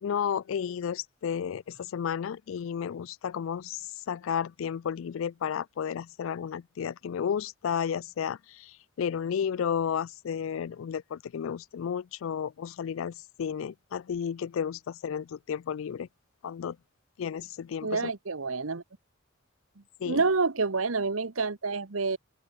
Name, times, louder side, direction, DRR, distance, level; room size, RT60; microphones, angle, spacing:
voice 1, 0.0-3.8 4.1-8.7 9.0-16.1 16.4-16.8 17.2-18.0 20.0-20.2, left 7 dB, 70° left, 0.3 m, -32 dB
voice 2, 17.8-18.8 20.0-22.2, right 4 dB, 80° right, 1.2 m, -28 dB
open air
head